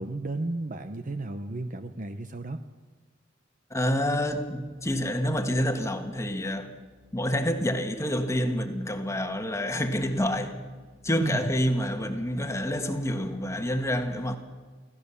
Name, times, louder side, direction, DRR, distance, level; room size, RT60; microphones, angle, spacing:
voice 1, 0.0-2.6 11.1-11.5, right 2 dB, 45° right, 8 dB, 0.8 m, -33 dB
voice 2, 3.7-6.8 7.1-10.6 11.0-14.4, equal, 15° left, 5 dB, 1.4 m, -28 dB
25.0 x 16.0 x 7.0 m, 1.4 s
head